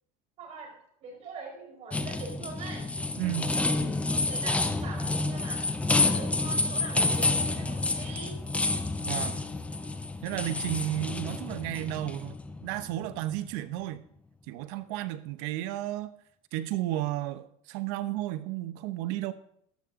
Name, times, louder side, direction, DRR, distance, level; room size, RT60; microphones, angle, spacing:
voice 1, 0.4-0.7 1.0-2.9 3.4-8.4, right 4 dB, 35° right, 5.0 m, -43 dB
sound 1, 1.9-13.5, left 2 dB, 5° left, 0.6 m, -29 dB
voice 2, 3.2-3.5 9.0-9.4 10.2-12.4 12.6-14.0 14.5-16.1 16.5-19.3, right 14 dB, 60° right, 0.9 m, -33 dB
15.0 x 10.5 x 3.7 m
cardioid pair, 155°, 18 cm